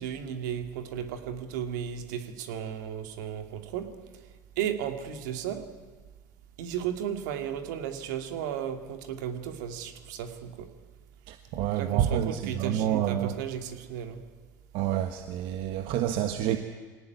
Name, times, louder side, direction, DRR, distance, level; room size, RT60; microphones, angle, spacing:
voice 1, 0.0-3.9 4.6-5.7 6.6-10.7 11.7-14.2, right 9 dB, 80° right, 6 dB, 2.5 m, -34 dB
voice 2, 11.3-13.4 14.7-16.6, right 10 dB, 65° right, 7 dB, 1.4 m, -28 dB
22.5 x 18.5 x 9.5 m, 1.4 s
hypercardioid pair, 85°, 10 cm